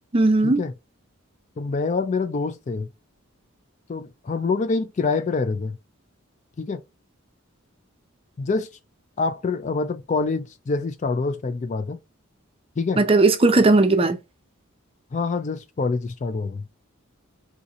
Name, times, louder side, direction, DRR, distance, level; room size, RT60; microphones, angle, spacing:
voice 1, 0.1-0.6 13.0-14.2, right 2 dB, 25° right, 0.5 m, -17 dB
voice 2, 1.6-2.9 3.9-5.8 6.6-6.8 8.4-8.7 9.2-12.0 12.8-13.0 15.1-16.7, left 4 dB, 35° left, 0.3 m, -26 dB
3.9 x 2.8 x 2.4 m
head